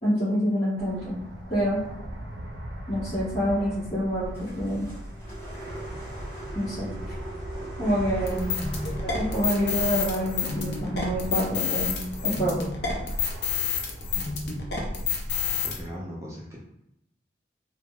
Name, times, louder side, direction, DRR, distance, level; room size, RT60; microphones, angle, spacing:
voice 1, 0.0-1.2 1.5-1.8 2.9-4.9 6.5-6.9 7.8-8.5 9.0-12.6, equal, 35° left, -14 dB, 1.0 m, -27 dB
Fixed-wing aircraft airplane, 0.8-15.9, equal, 75° right, 0.4 m, -37 dB
sound 1, 4.3-12.6, right 1 dB, 15° left, 1.2 m, -43 dB
sound 2, 8.3-15.8, left 7 dB, 60° left, 0.5 m, -29 dB
voice 2, 14.1-14.6 15.6-16.6, equal, 15° right, -5 dB, 0.5 m, -39 dB
3.4 x 2.1 x 2.2 m, 0.82 s
head